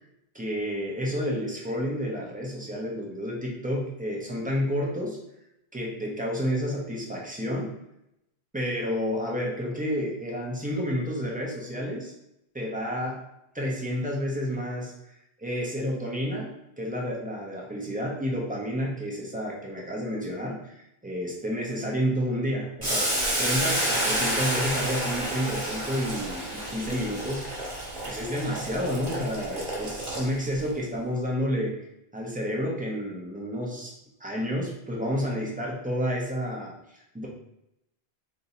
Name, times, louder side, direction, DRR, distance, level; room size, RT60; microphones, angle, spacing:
voice 1, 0.3-5.2 5.7-7.7 8.5-12.1 12.5-13.2 13.5-14.9 15.4-16.5 16.8-23.1 23.4-27.6 28.0-31.9 32.1-33.9 34.2-37.3, equal, 10° right, -2 dB, 0.7 m, -30 dB
Boiling, 22.8-30.6, right 1 dB, 40° right, 1.4 m, -29 dB
3.5 x 2.7 x 4.0 m, 0.82 s
omnidirectional pair, 1.1 m